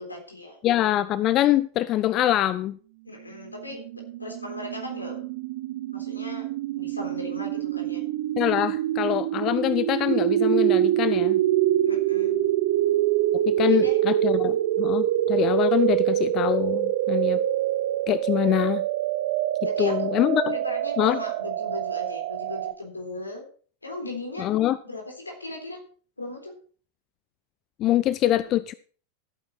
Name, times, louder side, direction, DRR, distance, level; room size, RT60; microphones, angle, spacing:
voice 1, 0.0-0.6 3.1-5.2 5.9-6.5 6.8-8.0 11.8-12.5 13.7-14.0 19.6-20.1 20.5-23.4 23.8-24.5 24.8-25.8 26.2-26.5, left 2 dB, 80° left, 3 dB, 3.8 m, -37 dB
voice 2, 0.6-2.8 8.4-11.4 13.5-17.4 18.1-18.9 19.8-20.6 21.0-21.2 24.4-24.8 27.8-28.7, left 13 dB, 35° left, 17 dB, 0.5 m, -24 dB
sound 1, 3.6-22.7, right 13 dB, 50° right, 0.9 m, -25 dB
14.5 x 8.7 x 4.3 m, 0.43 s
figure-of-eight pair, 90°, 0 cm